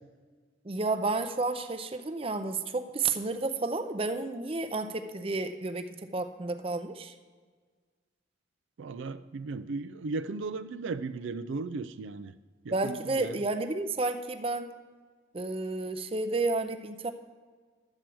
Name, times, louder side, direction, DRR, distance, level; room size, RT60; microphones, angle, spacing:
voice 1, 0.6-7.1 12.7-14.7 15.3-17.1, right 3 dB, 30° right, 8 dB, 0.5 m, -31 dB
voice 2, 8.8-12.3 12.6-13.4, right 3 dB, 85° right, 12 dB, 0.4 m, -36 dB
11.5 x 4.6 x 7.7 m, 1.5 s
head